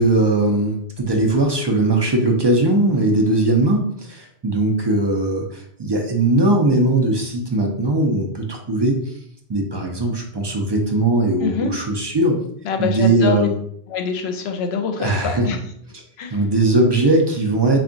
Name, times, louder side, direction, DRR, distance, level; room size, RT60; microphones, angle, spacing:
voice 1, 0.0-9.1 9.5-12.4 12.8-13.5 15.0-15.5 16.3-17.8, right 2 dB, 40° right, 2 dB, 0.3 m, -19 dB
voice 2, 11.4-11.7 12.6-13.5 13.9-15.6 16.2-16.4, left 6 dB, 80° left, 5 dB, 0.8 m, -24 dB
3.4 x 2.3 x 3.8 m, 0.67 s
omnidirectional pair, 1.1 m